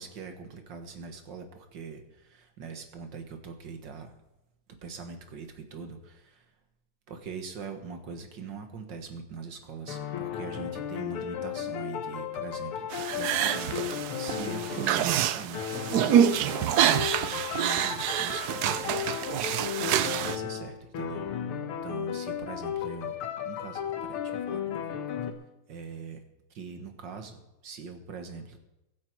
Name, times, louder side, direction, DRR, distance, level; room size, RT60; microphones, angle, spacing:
voice 1, 0.0-4.2 4.7-6.5 7.1-13.9 14.2-21.3 21.8-23.2 23.4-24.9 25.7-26.2 26.5-28.6, right 5 dB, 60° right, 6 dB, 2.1 m, -42 dB
sound 1, 9.9-15.2 15.5-25.3, left 9 dB, 80° left, 2.0 m, -35 dB
sound 2, 12.9-20.4, right 11 dB, 80° right, 0.8 m, -27 dB
23.0 x 8.5 x 4.6 m, 0.94 s
omnidirectional pair, 2.4 m